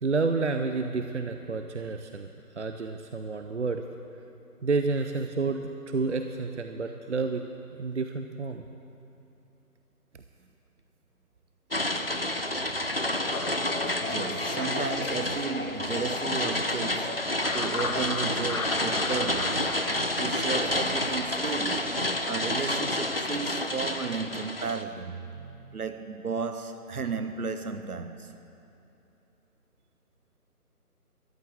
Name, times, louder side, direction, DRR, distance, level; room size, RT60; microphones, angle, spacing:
voice 1, 0.0-2.3 2.6-3.8 4.6-7.4 7.8-8.7 25.3-25.8, right 4 dB, 50° right, 0.5 m, -30 dB
sound 1, 11.7-24.8, left 1 dB, 40° left, 0.4 m, -29 dB
sound 2, 13.3-22.4, left 4 dB, 60° left, 1.1 m, -38 dB
voice 2, 14.0-19.8 20.2-21.9 22.3-25.2 25.7-28.3, right 5 dB, 70° right, 0.8 m, -34 dB
13.5 x 7.6 x 8.7 m
figure-of-eight pair, 155°, 47 cm